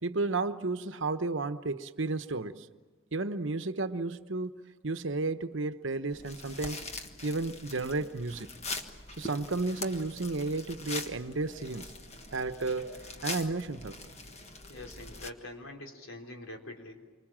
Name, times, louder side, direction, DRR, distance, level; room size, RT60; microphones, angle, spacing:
voice 1, 0.0-2.7 3.1-6.8 7.2-8.5 9.2-12.0 12.3-14.1, right 3 dB, 70° right, 1.0 m, -33 dB
sound 1, 6.1-15.3, left 3 dB, 30° left, 1.5 m, -42 dB
voice 2, 14.7-17.0, left 1 dB, 80° left, 3.8 m, -44 dB
28.5 x 25.0 x 7.5 m
head